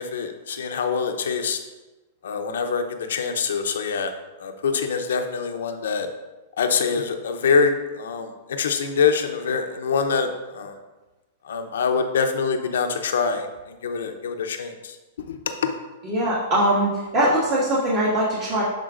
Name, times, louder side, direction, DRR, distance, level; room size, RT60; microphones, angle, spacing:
voice 1, 0.0-1.6 2.2-4.1 4.4-6.1 6.6-10.8 11.5-13.5 13.8-14.9 15.2-15.4 15.6-15.7, left 5 dB, 85° left, 6 dB, 0.7 m, -24 dB
voice 2, 16.0-18.6, right 1 dB, 45° right, -8 dB, 1.9 m, -21 dB
10.5 x 4.0 x 2.5 m, 1.1 s
hypercardioid pair, 140°, 0 cm